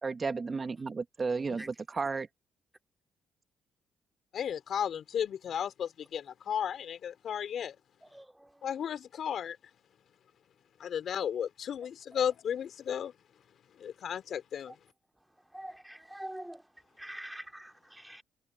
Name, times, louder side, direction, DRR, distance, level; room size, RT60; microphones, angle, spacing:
voice 1, 0.0-2.3, right 4 dB, 35° right, 1.1 m, -33 dB
voice 2, 4.3-7.8 8.6-9.6 10.8-13.1 13.7-14.8, left 8 dB, 60° left, 3.6 m, -34 dB
voice 3, 8.1-8.5 15.5-16.6 17.0-18.2, right 1 dB, 5° right, 2.5 m, -44 dB
cardioid pair, 90°, 0 cm